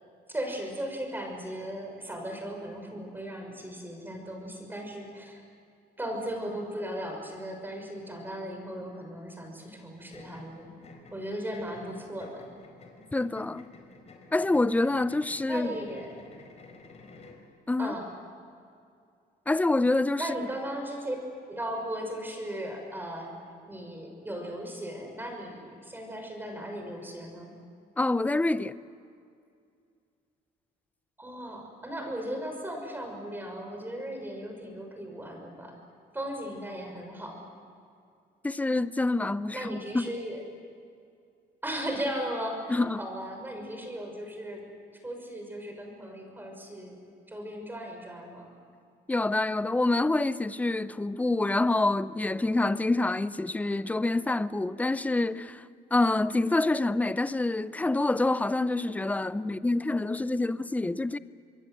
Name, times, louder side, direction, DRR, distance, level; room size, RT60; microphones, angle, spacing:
voice 1, 0.3-5.4 6.0-10.7 11.1-12.5 15.5-16.1 17.8-18.1 20.2-21.2 21.5-23.4 23.7-27.5 31.2-35.8 36.1-37.4 39.5-40.4 41.6-44.6 45.0-47.0 47.3-48.6, equal, 10° right, 6.1 m, -37 dB
sound 1, 10.1-17.5, left 3 dB, 40° left, 4.4 m, -52 dB
voice 2, 13.1-13.7 14.3-15.7 17.7-17.9 19.5-20.3 28.0-28.7 38.4-40.1 42.7-43.0 49.1-55.6 55.9-61.2, left 2 dB, 10° left, 0.7 m, -26 dB
26.5 x 22.0 x 8.0 m
cardioid pair, 110°, 17 cm